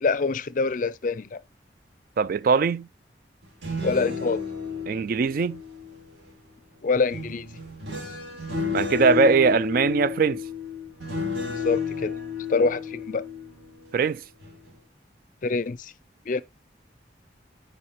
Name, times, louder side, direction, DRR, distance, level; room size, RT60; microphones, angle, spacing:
voice 1, 0.0-1.4 3.8-4.4 6.8-7.5 11.6-12.1 12.5-13.3 15.4-15.9 16.3-16.4, left 4 dB, 45° left, 0.4 m, -25 dB
voice 2, 2.2-2.9 4.9-5.6 8.7-10.4 13.9-14.2, right 5 dB, 50° right, 0.3 m, -21 dB
sound 1, 3.4-6.3 7.1-14.0 14.4-14.7, left 5 dB, 70° right, 3.5 m, -32 dB
9.9 x 4.4 x 3.0 m
head